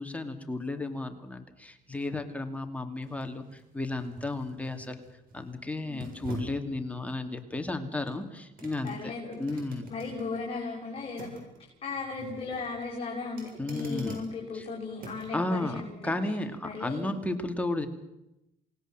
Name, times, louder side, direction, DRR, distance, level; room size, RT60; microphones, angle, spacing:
voice 1, 0.0-5.0 5.3-9.1 9.4-9.9 13.6-14.2 14.5-14.7 15.3-17.9, left 2 dB, 10° left, 5 dB, 2.6 m, -33 dB
sound 1, 0.8-15.4 15.9-16.0, right 3 dB, 60° right, 7.8 m, -48 dB
voice 2, 8.8-9.4 9.9-11.3 11.8-16.1 16.6-17.1, left 4 dB, 35° left, -3 dB, 6.9 m, -36 dB
28.0 x 20.0 x 7.6 m, 0.91 s
cardioid pair, 110°, 17 cm